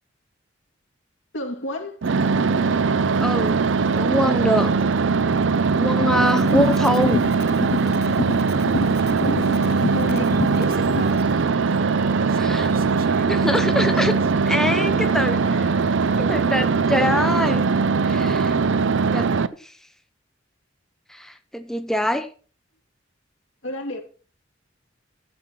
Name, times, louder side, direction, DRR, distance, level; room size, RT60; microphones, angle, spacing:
voice 1, 1.3-2.0 9.2-10.4 14.8-15.0 15.5-16.1 23.6-24.0, left 1 dB, 75° left, 2.4 m, -33 dB
sound 1, 2.0-19.5, right 4 dB, 70° right, 0.5 m, -21 dB
voice 2, 3.2-3.6 3.9-4.7 5.8-7.2 12.3-12.7 13.2-14.2 14.5-15.4 16.2-17.7 18.0-18.5 19.1-19.3 19.6-19.7 21.1-22.3, equal, ahead, 0.6 m, -24 dB
sound 2, 6.3-11.2, left 3 dB, 55° left, 0.5 m, -28 dB
sound 3, 8.7-15.4, right 3 dB, 50° right, 0.9 m, -39 dB
12.0 x 7.4 x 4.5 m
head